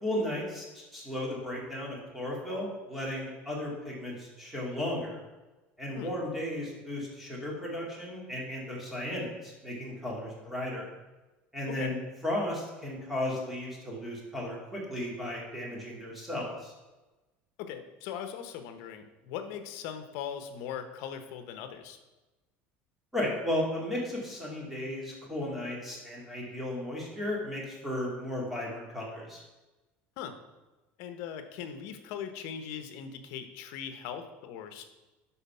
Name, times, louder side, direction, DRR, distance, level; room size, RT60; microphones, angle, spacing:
voice 1, 0.0-5.2 5.8-10.9 11.5-16.7 23.1-29.4, left 1 dB, 5° right, -4 dB, 2.3 m, -35 dB
voice 2, 17.6-22.0 30.2-30.4 31.0-34.8, left 8 dB, 65° left, 8 dB, 1.0 m, -40 dB
11.5 x 4.2 x 5.6 m, 1.1 s
cardioid pair, 165°, 5 cm